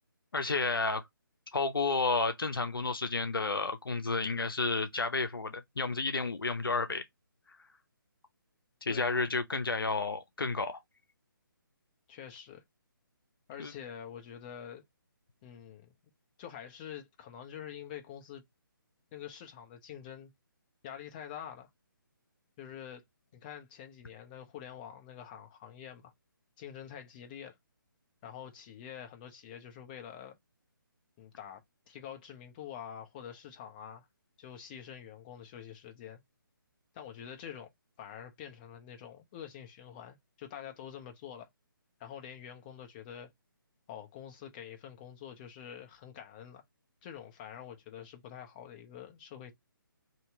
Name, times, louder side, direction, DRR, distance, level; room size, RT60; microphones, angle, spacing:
voice 1, 0.3-1.0 1.5-7.0 8.8-10.8 13.6-13.7, left 3 dB, 80° left, 0.7 m, -31 dB
voice 2, 8.9-9.2 12.1-12.6 13.5-14.8 15.4-15.9 16.4-18.4 19.1-20.3 20.8-21.7 22.6-23.0 23.3-26.1 26.6-27.6 28.2-30.4 31.2-31.6 31.9-34.1 34.4-36.2 36.9-37.7 38.0-41.5 42.0-43.3 43.9-46.6 47.0-49.5, left 9 dB, 25° left, 0.8 m, -46 dB
2.9 x 2.8 x 3.4 m
figure-of-eight pair, 150°, 12 cm